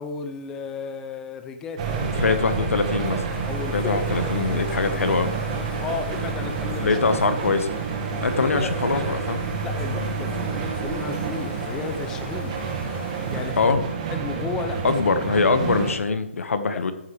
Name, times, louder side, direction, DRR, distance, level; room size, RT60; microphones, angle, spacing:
voice 1, 0.0-2.7 3.4-5.2 5.5-7.6 8.4-9.2 9.6-12.6 13.3-13.7 14.1-14.8 15.1-15.2 16.7-16.8, left 5 dB, 5° left, 7 dB, 0.4 m, -34 dB
sound 1, 1.8-15.9, right 5 dB, 30° right, 1.8 m, -29 dB
voice 2, 2.0-3.2 3.7-5.3 6.8-7.7 8.2-9.4 13.6-13.8 14.8-16.9, left 4 dB, 80° left, 9 dB, 1.4 m, -23 dB
sound 2, 3.3-13.7, left 2 dB, 40° left, 3.0 m, -43 dB
sound 3, 6.1-12.8, right 4 dB, 80° right, 1.6 m, -42 dB
13.5 x 9.5 x 3.4 m, 0.94 s
hypercardioid pair, 175°, 7 cm